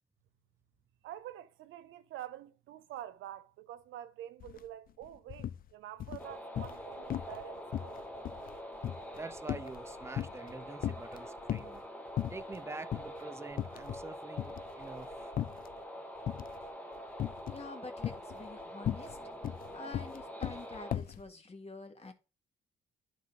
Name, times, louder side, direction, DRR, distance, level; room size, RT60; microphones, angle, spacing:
voice 1, 1.0-8.0, right 12 dB, 85° right, 0.8 m, -47 dB
sound 1, 4.4-4.6 4.9-5.6 6.0-6.8 7.1-7.4 7.7-10.5 10.8-11.8 12.2-12.6 12.9-13.1 13.5-14.1 14.4-15.7 16.3-16.7 17.2-17.7 18.0-21.2, left 11 dB, 45° left, 0.4 m, -37 dB
sound 2, 6.2-21.0, equal, 5° left, 1.2 m, -45 dB
voice 2, 9.2-11.8 12.3-15.3, right 3 dB, 15° right, 0.6 m, -46 dB
voice 3, 17.5-22.1, left 3 dB, 30° left, 1.9 m, -48 dB
11.5 x 4.1 x 3.8 m
cardioid pair, 90°, 20 cm